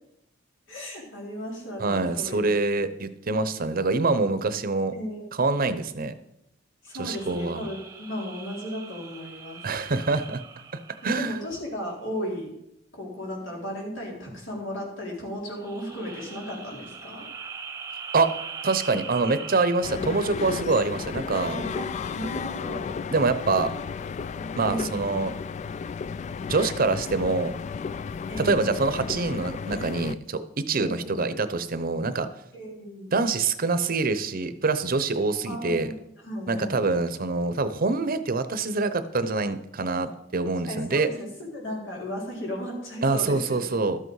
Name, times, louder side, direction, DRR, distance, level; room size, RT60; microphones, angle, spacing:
voice 1, 0.7-2.5 4.9-5.6 6.8-9.7 11.0-12.5 12.9-17.3 21.3-22.9 24.6-25.1 28.3-28.8 30.7-31.3 32.5-33.1 35.5-35.9 36.2-36.8 40.7-43.7, equal, 85° left, -2 dB, 4.0 m, -35 dB
voice 2, 1.8-4.9 5.3-6.1 7.0-7.7 9.6-10.4 10.7-11.4 18.1-18.3 18.6-21.6 23.1-23.7 24.6-25.3 26.5-27.5 28.4-32.3 33.1-35.9 36.5-41.1 43.0-44.0, right 3 dB, 50° right, 12 dB, 0.7 m, -25 dB
sound 1, 6.9-11.7 15.5-20.2, right 5 dB, 15° right, 0.9 m, -41 dB
sound 2, 19.8-30.2, left 5 dB, 40° left, 0.3 m, -33 dB
12.5 x 7.9 x 4.8 m, 0.84 s
head